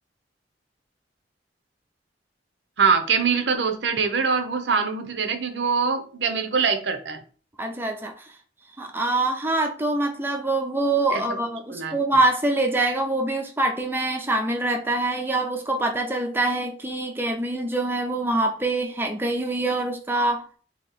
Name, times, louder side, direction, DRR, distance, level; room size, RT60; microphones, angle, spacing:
voice 1, 2.8-7.2 11.1-11.4 11.7-12.0, right 5 dB, 70° right, 7 dB, 0.6 m, -23 dB
voice 2, 7.6-8.1 8.8-20.4, right 2 dB, 10° right, 2 dB, 0.4 m, -24 dB
2.8 x 2.8 x 4.0 m, 0.41 s
head